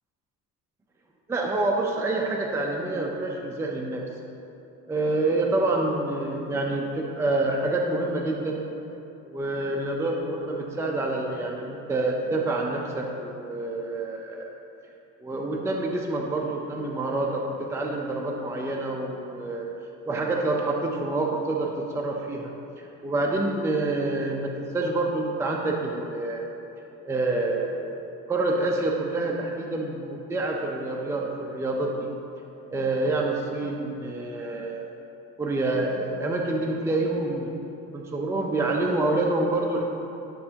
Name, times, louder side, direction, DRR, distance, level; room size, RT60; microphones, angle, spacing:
voice 1, 1.3-4.0 4.8-8.6 9.2-14.5 15.2-19.7 20.0-26.5 27.0-27.9 28.3-32.1 32.7-35.0 35.4-37.5 37.9-39.8, right 2 dB, 10° right, 0 dB, 0.5 m, -27 dB
12.0 x 6.6 x 2.9 m, 2.9 s
cardioid pair, 145°, 32 cm